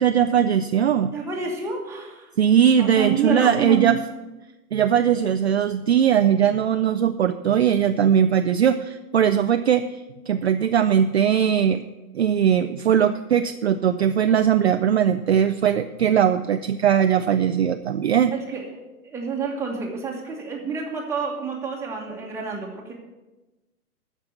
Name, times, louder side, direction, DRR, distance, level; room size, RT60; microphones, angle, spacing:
voice 1, 0.0-1.1 2.4-4.0 4.7-9.8 10.3-11.8 12.1-18.3, right 9 dB, 45° right, 8 dB, 0.5 m, -20 dB
voice 2, 1.1-2.3 2.8-4.0 18.3-18.8 19.0-22.9, right 5 dB, 5° right, -2 dB, 1.4 m, -28 dB
13.0 x 5.4 x 7.0 m, 1.1 s
figure-of-eight pair, 125°, 45 cm